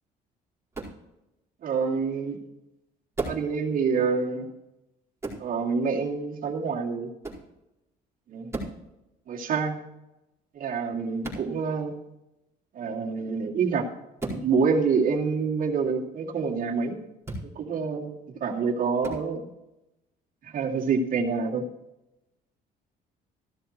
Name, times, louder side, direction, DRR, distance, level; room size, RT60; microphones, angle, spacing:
sound 1, 0.7-1.0 3.1-3.5 5.2-5.5 7.2-7.5 8.5-8.8 11.2-11.5 14.2-14.4 17.2-17.5 19.0-19.2, right 2 dB, 15° right, 4.3 m, -34 dB
voice 1, 1.6-2.4 3.2-4.5 5.4-7.1 8.3-8.5 9.3-9.8 10.5-12.0 12.7-13.9 14.2-17.0 17.4-19.5 20.4-21.6, right 5 dB, 55° right, -1 dB, 2.5 m, -27 dB
15.0 x 12.5 x 3.1 m, 0.92 s
cardioid pair, 110°, 17 cm